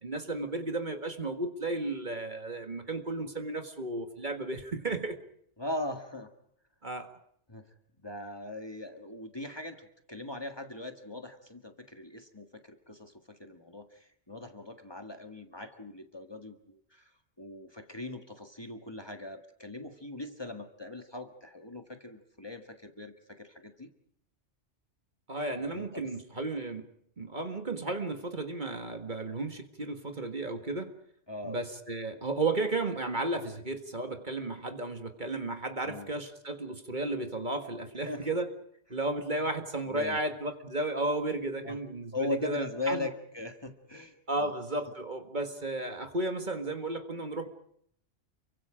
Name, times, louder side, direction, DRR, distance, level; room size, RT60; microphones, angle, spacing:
voice 1, 0.0-5.2 6.8-7.1 25.3-26.9 27.2-30.9 31.4-38.5 38.9-43.1 44.3-47.5, right 2 dB, 40° right, 7 dB, 1.9 m, -34 dB
voice 2, 5.6-6.3 7.5-7.7 8.0-17.0 17.4-23.9 25.6-26.1 31.3-31.6 35.8-36.2 38.0-38.3 39.4-39.5 39.9-40.2 41.6-41.8 42.1-44.5, left 2 dB, 20° left, 5 dB, 1.7 m, -40 dB
29.0 x 24.0 x 5.0 m, 0.69 s
omnidirectional pair, 1.2 m